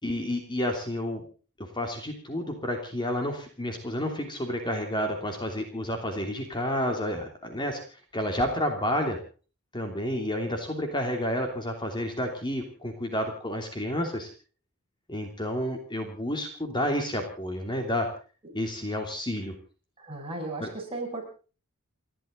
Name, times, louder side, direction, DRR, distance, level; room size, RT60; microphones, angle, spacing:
voice 1, 0.0-1.2 1.6-9.2 9.7-14.3 15.1-18.1 18.5-19.5 20.6-20.7, left 1 dB, 20° left, 4 dB, 3.0 m, -30 dB
voice 2, 20.0-21.3, right 2 dB, 25° right, 0 dB, 7.2 m, -35 dB
30.0 x 12.5 x 3.9 m, 0.38 s
head